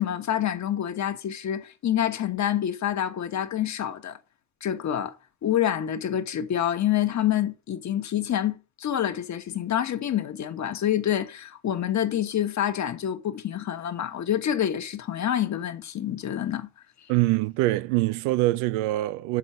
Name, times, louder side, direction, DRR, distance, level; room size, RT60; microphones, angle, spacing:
voice 1, 0.0-4.2 4.6-5.1 5.4-16.7, left 10 dB, 35° left, 1.3 m, -27 dB
voice 2, 17.1-19.4, right 18 dB, 90° right, 0.6 m, -24 dB
7.2 x 3.9 x 6.0 m
cardioid pair, 120°, 46 cm